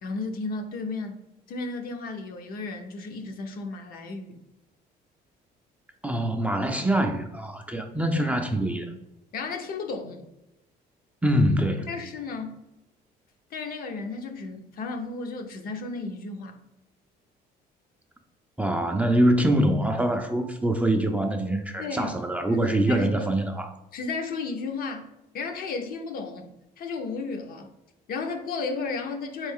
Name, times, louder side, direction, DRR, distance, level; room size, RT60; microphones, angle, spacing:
voice 1, 0.0-4.4 8.3-8.4 9.3-10.3 11.9-12.7 13.5-16.6 21.8-22.2 22.5-23.3 23.9-26.5 26.8-27.7 28.1-29.5, left 4 dB, 60° left, 0.7 m, -34 dB
voice 2, 6.0-8.9 11.2-11.9 18.6-23.7, right 1 dB, 10° right, 0.4 m, -24 dB
3.9 x 3.2 x 3.6 m
cardioid pair, 110°, 17 cm